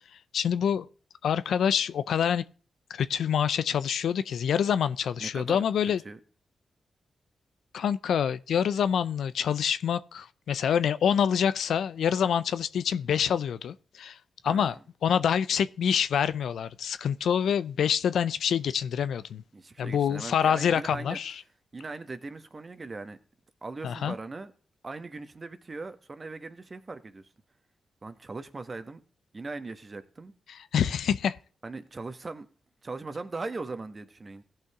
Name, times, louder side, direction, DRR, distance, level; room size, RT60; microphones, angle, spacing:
voice 1, 0.3-0.9 1.2-2.4 2.9-6.0 7.7-14.2 14.4-14.8 15.0-19.4 19.8-21.4 23.8-24.1 30.5-31.4, left 8 dB, 85° left, 0.5 m, -26 dB
voice 2, 5.2-5.6 6.0-6.2 14.4-14.8 19.5-21.2 21.7-23.2 23.6-24.5 24.8-27.2 28.0-29.0 29.3-30.3 31.6-32.5 32.8-34.4, right 3 dB, 40° right, 1.4 m, -39 dB
16.0 x 5.7 x 3.6 m
cardioid pair, 50°, 0 cm